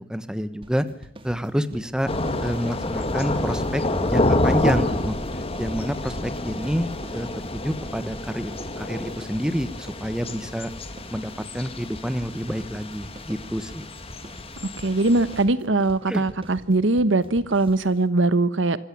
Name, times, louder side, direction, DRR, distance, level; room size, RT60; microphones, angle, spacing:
voice 1, 0.1-0.8 1.2-2.1 2.4-3.8 4.1-5.2 5.6-7.3 7.5-8.5 8.8-10.7 11.1-13.9 16.1-16.2, equal, 5° right, 1.2 m, -28 dB
sound 1, 0.6-18.1, right 1 dB, 30° right, 1.9 m, -45 dB
Thunder / Rain, 2.1-15.4, left 1 dB, 30° left, 2.1 m, -28 dB
voice 2, 14.8-18.8, right 2 dB, 70° right, 1.1 m, -21 dB
25.5 x 14.5 x 8.4 m
head